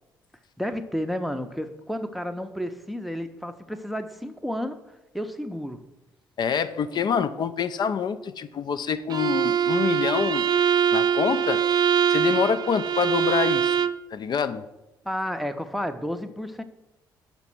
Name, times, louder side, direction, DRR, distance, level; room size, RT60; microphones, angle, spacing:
voice 1, 0.6-4.8 5.1-5.8 15.0-16.6, equal, ahead, 8 dB, 0.7 m, -31 dB
voice 2, 6.4-10.4 10.9-11.6 12.1-13.8 14.1-14.6, left 7 dB, 40° left, 11 dB, 0.5 m, -26 dB
Bowed string instrument, 9.1-14.0, right 8 dB, 35° right, 0.4 m, -23 dB
6.0 x 5.7 x 5.9 m, 0.95 s
figure-of-eight pair, 45°, 11 cm